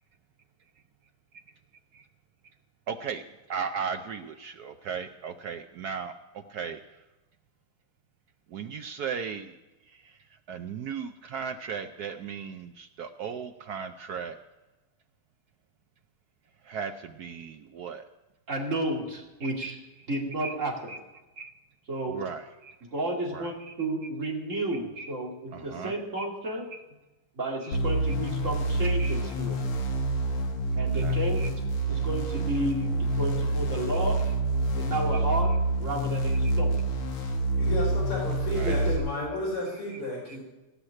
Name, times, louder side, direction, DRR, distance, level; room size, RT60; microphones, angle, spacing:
voice 1, 2.9-7.0 8.5-9.6 9.9-14.4 16.6-18.0 19.4-19.8 20.4-20.5 20.9-21.0 21.4-21.5 22.1-22.8 23.3-23.7 25.0-25.1 25.5-26.3 26.7-26.8 29.0-29.2 30.7-31.5 38.5-38.8 39.9-40.0 40.3-40.4, right 6 dB, 80° right, 7 dB, 0.8 m, -37 dB
voice 2, 18.5-19.8 20.1-20.9 21.9-22.2 22.8-26.7 27.3-29.6 30.8-31.5 31.9-34.2 34.7-35.5 35.8-36.8 38.5-39.0, right 1 dB, 35° right, -1 dB, 2.7 m, -32 dB
sound 1, 27.7-39.0, right 2 dB, 70° left, 2.3 m, -27 dB
voice 3, 37.5-40.4, left 1 dB, 85° left, -5 dB, 5.0 m, -32 dB
18.0 x 6.4 x 9.8 m, 1.1 s
omnidirectional pair, 2.4 m